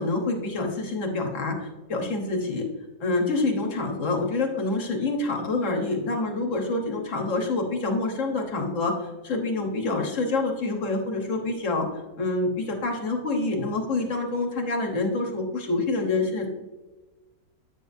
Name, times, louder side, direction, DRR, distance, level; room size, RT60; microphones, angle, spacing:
voice 1, 0.0-1.6 1.9-2.6 3.0-8.9 9.2-11.9 12.2-16.5, left 2 dB, 55° left, 2 dB, 1.5 m, -27 dB
8.8 x 6.9 x 2.6 m, 1.2 s
omnidirectional pair, 1.6 m